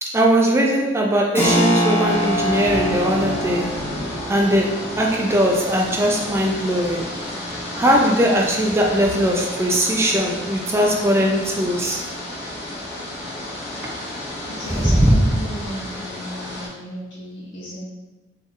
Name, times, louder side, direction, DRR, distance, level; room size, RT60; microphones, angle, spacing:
voice 1, 0.0-3.8 4.3-7.1 7.7-12.0 13.8-13.9 14.7-15.2, equal, 15° right, 0 dB, 0.3 m, -19 dB
Keyboard (musical), 1.4-11.7, equal, 10° left, 0.8 m, -28 dB
sound 1, 2.0-16.7, left 1 dB, 35° left, 1.4 m, -32 dB
voice 2, 14.4-17.9, equal, 70° left, -10 dB, 1.0 m, -34 dB
4.0 x 3.6 x 2.5 m, 1.1 s
head